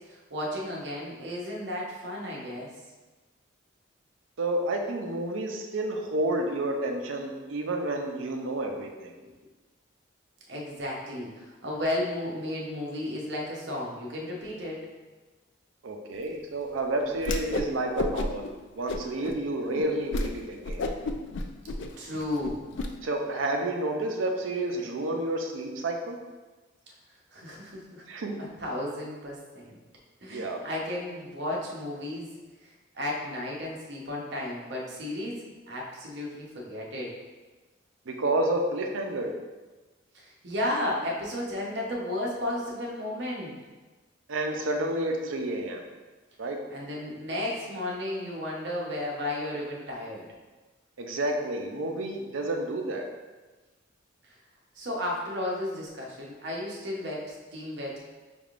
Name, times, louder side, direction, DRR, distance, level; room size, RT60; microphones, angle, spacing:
voice 1, 0.1-2.7 9.2-9.3 10.5-14.8 22.0-22.6 27.3-28.0 28.4-29.8 30.2-32.3 32.6-37.1 40.1-43.5 46.7-50.3 54.7-58.0, left 1 dB, 55° right, -3 dB, 0.9 m, -33 dB
voice 2, 4.4-9.1 15.8-18.5 18.8-20.9 23.0-26.2 28.1-28.4 30.3-30.6 38.1-39.3 44.3-45.8 46.4-46.6 51.0-53.1, right 1 dB, 80° right, 2 dB, 0.6 m, -30 dB
Whoosh swoosh swish, 17.2-17.7 18.0-18.5 18.9-19.4 19.7-19.8 20.1-20.3 20.6-22.9, left 2 dB, 65° left, 0.3 m, -30 dB
5.2 x 3.4 x 2.5 m, 1.3 s
head